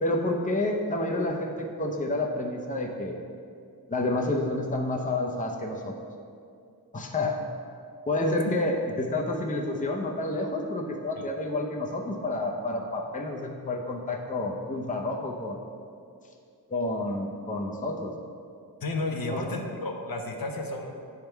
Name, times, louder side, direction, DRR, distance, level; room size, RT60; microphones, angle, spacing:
voice 1, 0.0-3.2 3.9-5.9 6.9-7.4 8.1-15.6 16.7-18.1 19.3-19.4, left 2 dB, 20° left, 1 dB, 0.6 m, -29 dB
voice 2, 18.8-20.9, left 2 dB, 60° left, 2 dB, 0.8 m, -32 dB
9.2 x 3.6 x 4.5 m, 2.4 s
wide cardioid pair, 80°, 39 cm